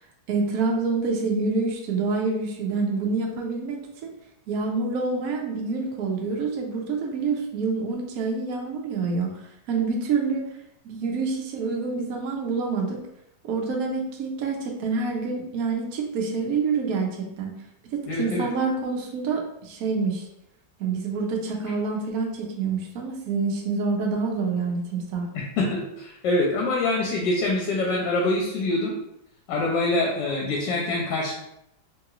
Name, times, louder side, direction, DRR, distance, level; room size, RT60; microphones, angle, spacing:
voice 1, 0.3-4.1 4.5-9.3 9.7-10.4 10.8-13.0 13.4-17.5 17.9-20.3 20.8-25.3, right 4 dB, 75° right, 1 dB, 0.8 m, -27 dB
voice 2, 18.1-18.5 25.6-28.9 29.5-31.3, left 2 dB, 75° left, -2 dB, 1.2 m, -25 dB
3.0 x 2.9 x 2.4 m, 0.79 s
omnidirectional pair, 2.1 m